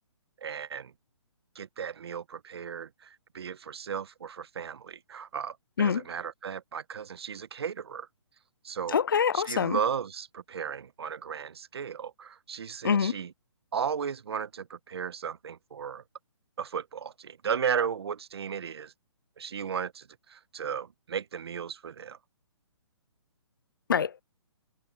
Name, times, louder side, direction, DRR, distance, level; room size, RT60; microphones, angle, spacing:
voice 1, 0.4-0.9 1.5-8.1 8.6-9.0 9.3-13.3 13.7-16.0 16.6-18.9 19.4-22.2, right 7 dB, 55° right, 1.2 m, -35 dB
voice 2, 8.9-9.8 12.8-13.1 23.9-24.2, left 7 dB, 45° left, 0.4 m, -25 dB
hypercardioid pair, 175°, 16 cm